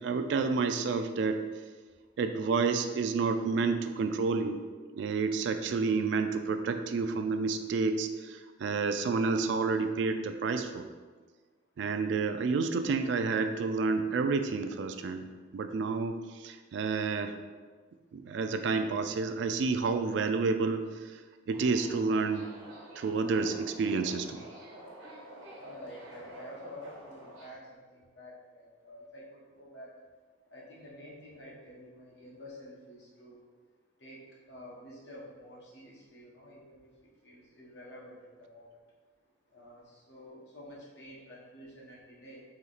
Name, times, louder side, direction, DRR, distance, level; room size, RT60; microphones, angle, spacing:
voice 1, 0.0-1.4 2.2-4.6 4.9-10.9 11.8-17.4 18.1-21.2 21.5-22.5 23.0-24.4, right 4 dB, 65° right, 8 dB, 0.3 m, -30 dB
Subway metro underground, 21.5-27.4, right 1 dB, 90° right, 1.1 m, -49 dB
voice 2, 25.6-29.9 30.5-33.4 34.0-34.2 34.5-36.9 37.2-38.7 39.5-42.4, left 1 dB, 60° left, -4 dB, 1.1 m, -49 dB
4.2 x 2.9 x 3.9 m, 1.4 s
head